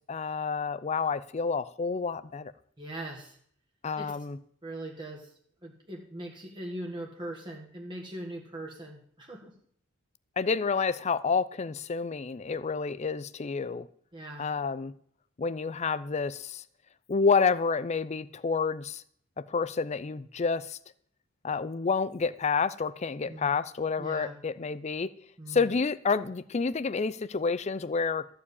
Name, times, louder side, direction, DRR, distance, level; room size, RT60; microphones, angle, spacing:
voice 1, 0.1-2.5 3.8-4.4 10.4-13.9 14.4-14.9 15.4-16.6 17.1-19.0 19.4-20.8 21.4-25.1 25.5-28.3, left 5 dB, 30° left, 16 dB, 0.4 m, -29 dB
voice 2, 2.8-3.4 4.0-4.1 4.6-5.3 5.6-9.5 14.1-14.5 23.2-23.5 24.0-24.4 25.4-25.7, right 1 dB, 25° right, 0 dB, 1.6 m, -40 dB
14.0 x 4.9 x 8.3 m, 0.62 s
head